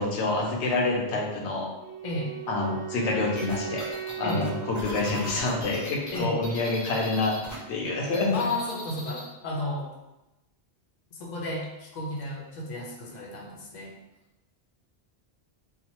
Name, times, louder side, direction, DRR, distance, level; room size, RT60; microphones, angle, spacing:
voice 1, 0.0-1.7 2.5-3.8 4.2-7.4 7.7-8.5, left 3 dB, 85° left, 0 dB, 0.9 m, -27 dB
Wind instrument woodwind instrument, 1.8-5.9, right 10 dB, 55° right, 0.9 m, -38 dB
voice 2, 2.0-2.4 4.2-4.5 6.1-6.4 8.3-9.9 11.1-14.0, left 1 dB, 50° left, -2 dB, 0.7 m, -33 dB
sound 1, 3.3-7.6 7.8-9.3, equal, 30° left, 0.3 m, -39 dB
2.9 x 2.2 x 2.9 m, 0.98 s
omnidirectional pair, 1.1 m